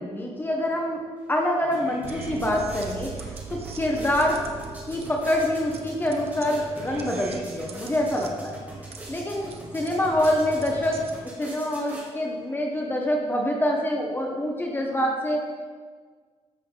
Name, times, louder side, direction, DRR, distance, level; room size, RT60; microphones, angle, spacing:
voice 1, 0.0-4.5 4.9-8.6 8.9-15.5, left 1 dB, 15° left, 0 dB, 1.2 m, -26 dB
sound 1, 1.2-1.3 1.6-12.5, right 1 dB, 15° right, 2.7 m, -43 dB
sound 2, 2.0-11.1, right 4 dB, 55° right, 1.0 m, -40 dB
13.0 x 6.9 x 4.0 m, 1.5 s
wide cardioid pair, 145°, 12 cm